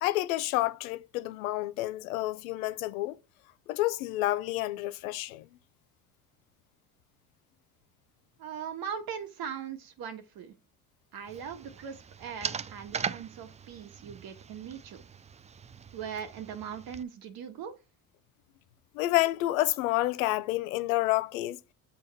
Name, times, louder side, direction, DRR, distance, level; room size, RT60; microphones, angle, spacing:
voice 1, 0.0-3.2 3.7-5.5 18.9-21.6, left 17 dB, 85° left, 0.7 m, -29 dB
voice 2, 8.4-10.6 11.1-15.0 15.9-17.7, right 7 dB, 60° right, 1.7 m, -40 dB
sound 1, 11.3-17.0, right 6 dB, 20° right, 0.4 m, -40 dB
7.4 x 4.1 x 5.9 m
supercardioid pair, 70°, 40 cm